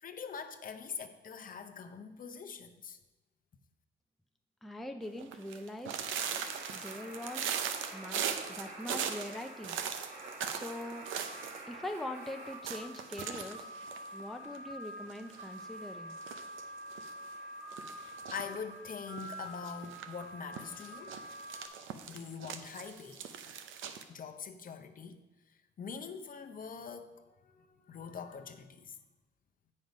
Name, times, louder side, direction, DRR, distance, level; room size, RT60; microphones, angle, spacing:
voice 1, 0.0-3.0 17.9-21.2 22.1-23.2 24.1-25.2 25.8-29.0, left 6 dB, 45° left, 6 dB, 0.7 m, -44 dB
voice 2, 4.6-6.0 6.7-7.6 7.9-8.2 8.5-9.8 10.5-11.1 11.7-13.7 14.1-16.2, left 1 dB, ahead, 5 dB, 0.5 m, -42 dB
Walking on thin ice, 5.2-11.6 11.9-12.0 12.2-12.3 12.6-14.7 15.1-15.7 16.1-17.1 17.7-18.5 19.1-20.1 20.5-24.0, right 8 dB, 80° right, 0.7 m, -39 dB
sound 1, 6.0-21.7, equal, 40° right, 1.6 m, -47 dB
7.7 x 5.4 x 5.3 m, 1.1 s
cardioid pair, 90°, 20 cm